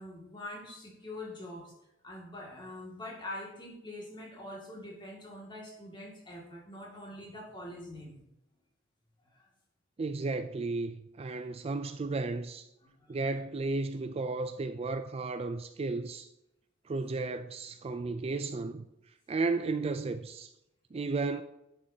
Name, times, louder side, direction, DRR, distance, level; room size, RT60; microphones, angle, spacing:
voice 1, 0.0-1.7 2.0-8.3 9.3-9.4 12.8-13.4, left 1 dB, 25° left, 2.2 m, -44 dB
voice 2, 10.0-12.7 13.1-16.3 16.9-18.9 19.3-20.5 20.9-21.4, right 3 dB, 30° right, 0.4 m, -33 dB
11.0 x 6.7 x 2.8 m
head